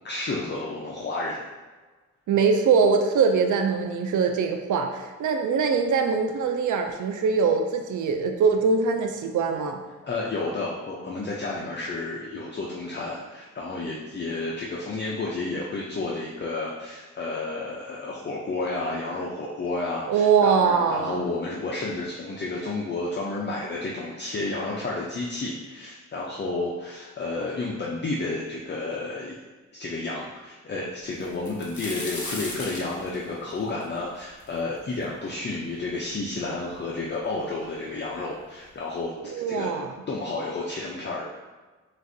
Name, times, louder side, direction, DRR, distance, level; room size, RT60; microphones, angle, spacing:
voice 1, 0.0-1.4 10.0-29.4 29.7-39.1 39.5-39.7 40.1-41.2, left 2 dB, 35° left, -4 dB, 0.6 m, -31 dB
voice 2, 2.3-9.8 20.1-21.2 39.2-39.9, right 5 dB, 80° right, 5 dB, 0.5 m, -22 dB
sound 1, 31.2-35.0 35.5-35.6 36.4-36.5 36.7-37.4 38.3-38.4 38.8-39.0, left 2 dB, 70° left, 1.2 m, -37 dB
6.3 x 2.5 x 2.6 m, 1.3 s
cardioid pair, 90°, 30 cm